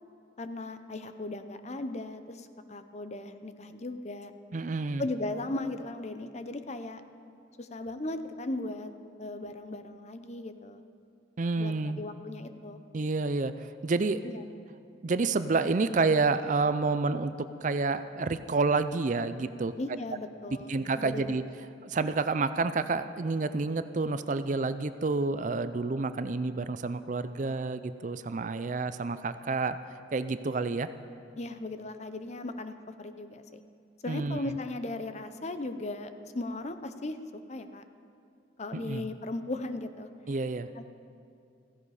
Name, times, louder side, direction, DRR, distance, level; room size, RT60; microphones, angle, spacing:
voice 1, 0.4-4.3 5.0-7.0 7.6-8.9 9.2-10.8 11.6-12.8 14.2-14.4 19.8-20.7 21.0-21.4 31.4-33.6 34.0-37.2 37.5-37.8 38.6-40.1 40.7-40.8, left 2 dB, 35° left, 9 dB, 0.7 m, -37 dB
voice 2, 4.5-5.0 11.4-12.0 12.9-14.2 15.0-19.7 20.7-21.4 21.8-29.8 30.1-30.9 34.1-34.5 38.7-39.1 40.3-40.7, right 3 dB, 40° right, 12 dB, 0.4 m, -29 dB
16.0 x 15.5 x 4.9 m, 2.5 s
head